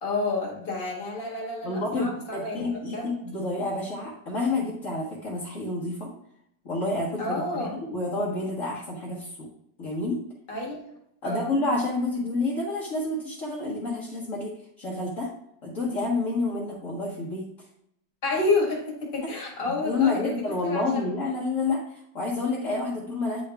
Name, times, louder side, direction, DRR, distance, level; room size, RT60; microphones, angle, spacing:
voice 1, 0.0-2.6 2.9-3.1 7.2-7.7 10.5-10.8 11.2-11.5 18.2-21.0, left 3 dB, 30° left, -1 dB, 1.7 m, -29 dB
voice 2, 1.6-6.1 6.6-9.5 9.8-10.2 11.2-14.5 14.8-15.3 15.6-17.5 19.2-19.3 19.6-23.4, left 3 dB, 45° left, -5 dB, 1.5 m, -29 dB
9.3 x 3.9 x 3.4 m, 0.75 s
omnidirectional pair, 2.0 m